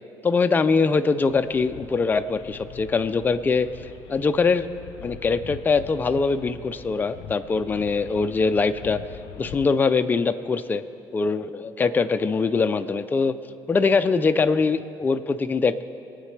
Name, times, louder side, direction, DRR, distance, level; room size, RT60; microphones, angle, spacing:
voice 1, 0.2-3.7 4.1-4.7 5.0-9.0 9.4-10.8 11.1-13.3 13.7-15.8, left 4 dB, 20° left, 9 dB, 0.4 m, -22 dB
sound 1, 1.3-9.7, left 10 dB, 90° left, 0.4 m, -43 dB
24.5 x 9.1 x 3.3 m, 2.7 s
cardioid pair, 135°, 8 cm